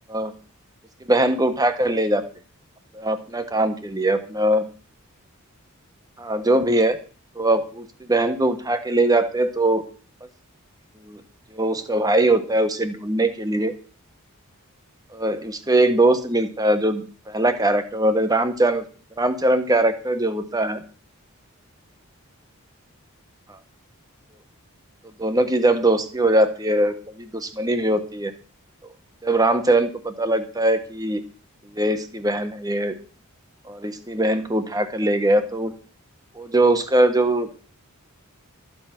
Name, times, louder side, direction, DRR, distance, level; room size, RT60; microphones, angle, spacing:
voice 1, 1.1-2.2 2.9-4.6 6.2-7.0 7.4-9.8 11.1-11.2 11.5-13.7 15.1-18.8 19.2-20.8 25.2-28.3 29.2-31.2 31.7-33.0 33.7-35.7 36.3-37.5, right 1 dB, 15° right, 9 dB, 1.4 m, -21 dB
13.5 x 8.0 x 6.1 m, 0.39 s
head